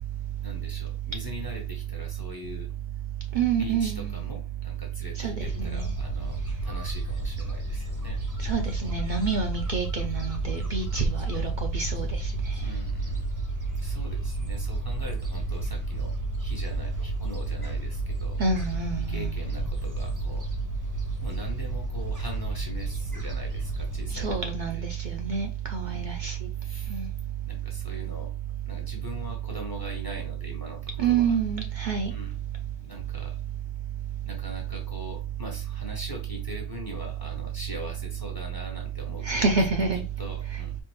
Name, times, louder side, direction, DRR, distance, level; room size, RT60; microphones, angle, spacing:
voice 1, 0.4-2.7 3.6-8.2 12.5-13.3 13.8-16.1 16.4-18.4 18.9-20.5 21.2-24.3 24.7-24.8 25.8-26.1 26.6-26.9 27.4-28.3 28.6-31.4 32.1-32.3 32.8-33.4 34.3-39.5 40.2-40.8, left 1 dB, 25° left, 0.7 m, -42 dB
voice 2, 3.3-4.1 5.2-5.9 8.4-12.3 18.4-19.3 24.1-26.4 26.9-27.1 31.0-32.1 39.2-40.0 40.5-40.6, right 5 dB, 55° right, 0.6 m, -27 dB
Gull seagull, 5.4-24.3, left 1 dB, 20° right, 0.7 m, -33 dB
4.4 x 2.5 x 3.1 m
omnidirectional pair, 1.1 m